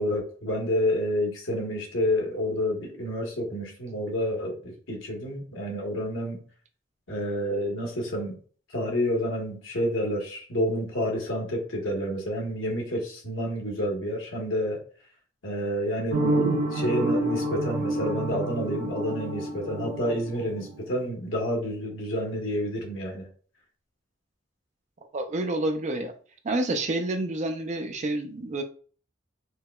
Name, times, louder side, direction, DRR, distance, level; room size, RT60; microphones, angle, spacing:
voice 1, 0.0-6.4 7.1-8.3 8.7-14.8 15.4-23.3, equal, 75° left, 1.1 m, -29 dB
sound 1, 16.1-20.9, right 1 dB, 65° right, 1.0 m, -28 dB
voice 2, 25.1-26.1 26.4-28.6, right 2 dB, 40° right, 0.4 m, -28 dB
4.6 x 2.2 x 2.3 m
head